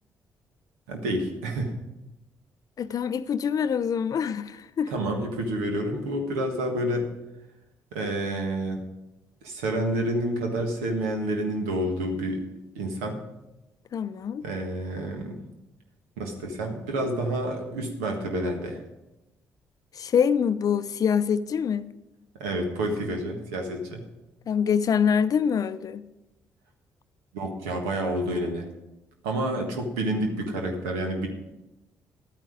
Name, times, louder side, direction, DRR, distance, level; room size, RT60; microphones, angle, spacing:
voice 1, 0.9-1.7 4.9-7.1 7.9-8.8 9.4-12.4 12.7-13.2 14.4-15.4 16.2-18.8 22.4-24.0 27.3-28.7 29.2-31.3, right 1 dB, 85° right, 1.5 m, -29 dB
voice 2, 2.8-4.9 13.9-14.4 19.9-21.9 24.5-26.1, left 7 dB, 50° left, 0.5 m, -25 dB
11.5 x 9.2 x 5.1 m
hypercardioid pair, 45°, 8 cm